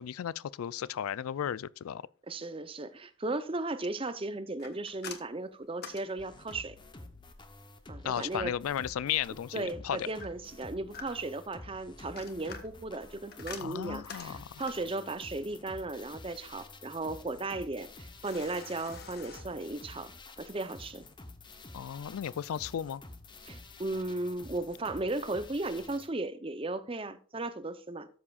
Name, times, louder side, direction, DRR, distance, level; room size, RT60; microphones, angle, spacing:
voice 1, 0.0-2.0 8.0-10.1 13.6-14.6 21.7-23.0, left 9 dB, 85° left, 0.4 m, -35 dB
voice 2, 2.3-6.8 7.9-8.5 9.5-20.1 20.4-21.1 23.5-28.1, right 2 dB, 25° right, 0.6 m, -36 dB
sound 1, 4.6-6.9 10.2-11.4 12.0-14.9 18.2-19.4, left 5 dB, 45° left, 1.3 m, -47 dB
sound 2, 6.2-26.1, left 2 dB, 20° left, 0.9 m, -50 dB
13.0 x 7.3 x 2.4 m
head